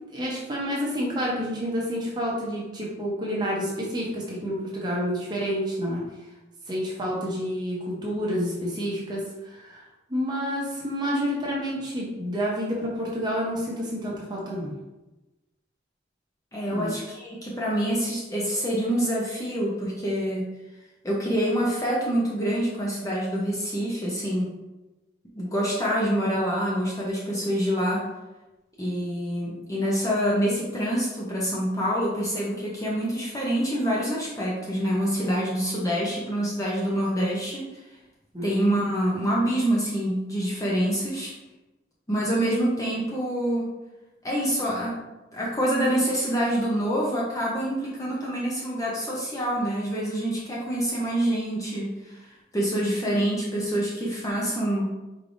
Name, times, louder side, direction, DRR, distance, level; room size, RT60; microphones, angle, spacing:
voice 1, 0.1-6.0 6.7-9.8 10.1-14.7 16.7-16.9 38.3-38.5, equal, 20° right, -4 dB, 0.8 m, -29 dB
voice 2, 16.5-20.5 21.0-24.5 25.4-28.1 28.8-37.7 38.4-41.3 42.1-43.7 44.2-45.0 45.3-54.9, equal, 15° left, -5 dB, 0.7 m, -26 dB
4.5 x 3.3 x 2.6 m, 1.1 s
head